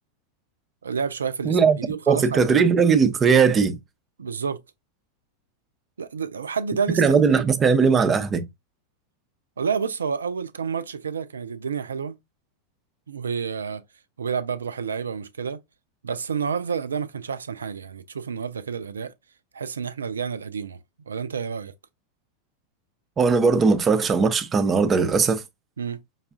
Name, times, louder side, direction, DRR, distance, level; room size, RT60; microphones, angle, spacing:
voice 1, 0.8-2.5 4.2-4.6 6.0-7.0 7.3-7.4 9.6-12.2 13.1-13.8 14.2-15.6 16.0-19.1 19.5-20.8 21.1-21.7 25.8-26.0, right 6 dB, 75° right, 0.4 m, -29 dB
voice 2, 1.4-1.8 2.1-3.8 7.0-8.4 23.2-25.4, right 5 dB, 25° right, 0.5 m, -19 dB
5.3 x 2.3 x 2.4 m
figure-of-eight pair, 90°, 0 cm